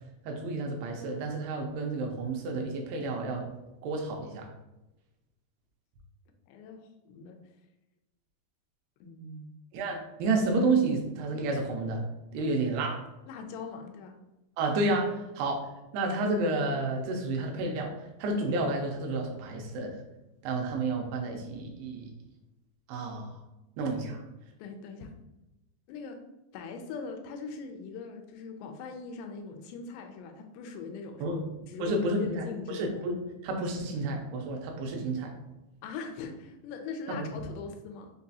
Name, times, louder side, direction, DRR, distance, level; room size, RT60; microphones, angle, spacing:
voice 1, 0.3-3.5 3.8-4.5 9.7-12.0 12.3-13.0 14.6-15.7 15.9-17.9 18.2-20.0 20.4-22.1 22.9-23.3 23.8-24.2 31.2-31.4 31.8-33.2 33.4-35.3 37.1-37.3, right 2 dB, 85° right, 1 dB, 2.6 m, -30 dB
voice 2, 6.5-6.8 7.1-7.4 9.0-9.5 13.3-14.2 24.1-24.2 24.6-25.1 25.9-26.2 26.5-31.4 31.7-33.1 35.8-38.1, left 5 dB, 85° left, 4 dB, 2.7 m, -41 dB
6.5 x 2.3 x 2.7 m, 0.98 s
omnidirectional pair, 4.8 m